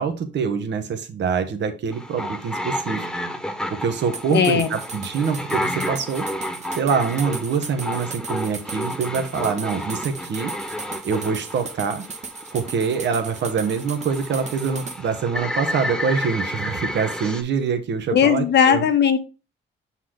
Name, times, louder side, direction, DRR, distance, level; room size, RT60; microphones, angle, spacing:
voice 1, 0.0-3.1 3.8-6.3 6.7-10.5 11.0-12.0 12.5-18.8, right 6 dB, 65° right, 8 dB, 1.2 m, -25 dB
sound 1, 1.9-17.4, left 1 dB, 5° left, 1.3 m, -31 dB
sound 2, 4.1-15.0, right 4 dB, 35° right, 1.0 m, -37 dB
voice 2, 4.3-4.7 18.1-19.2, left 8 dB, 60° left, 7 dB, 1.2 m, -17 dB
6.4 x 4.2 x 3.8 m, 0.31 s
cardioid pair, 90°, 20 cm